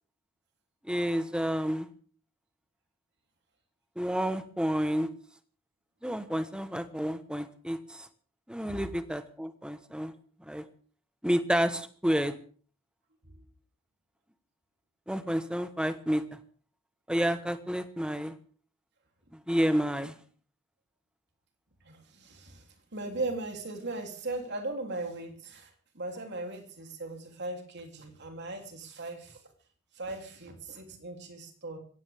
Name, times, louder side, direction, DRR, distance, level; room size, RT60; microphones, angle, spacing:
voice 1, 0.9-1.9 4.0-5.1 6.0-8.1 8.5-10.1 10.5-10.6 11.2-12.3 15.1-16.2 17.1-18.3 19.5-20.2, equal, 5° right, 10 dB, 1.2 m, -30 dB
voice 2, 21.8-29.4 29.9-31.8, right 2 dB, 55° right, 3 dB, 3.4 m, -38 dB
22.0 x 17.0 x 3.7 m, 0.43 s
head